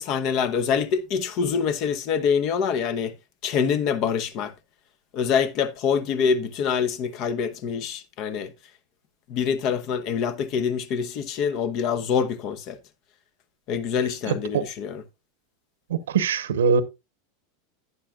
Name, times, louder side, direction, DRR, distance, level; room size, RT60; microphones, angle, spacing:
voice 1, 0.0-3.1 3.4-4.5 5.1-8.5 9.3-12.8 13.7-15.0, left 6 dB, 50° left, 1.0 m, -25 dB
voice 2, 14.3-14.7 15.9-16.8, right 6 dB, 90° right, 0.9 m, -22 dB
11.0 x 9.1 x 2.4 m
hypercardioid pair, 115°, 0 cm